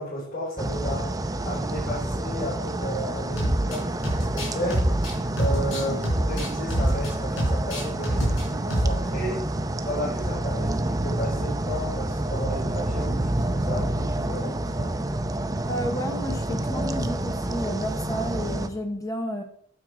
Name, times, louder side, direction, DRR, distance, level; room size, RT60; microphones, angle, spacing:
voice 1, 0.0-5.1 5.4-14.9, equal, 50° left, -8 dB, 4.5 m, -33 dB
sound 1, 0.6-18.7, right 1 dB, 20° right, 0.7 m, -28 dB
sound 2, 3.4-3.8 4.0-7.1 7.4-8.4 8.7-9.0, right 1 dB, 80° left, 4.3 m, -25 dB
voice 2, 15.7-19.4, equal, 15° left, 5 dB, 1.0 m, -31 dB
9.0 x 7.7 x 4.8 m, 0.64 s
head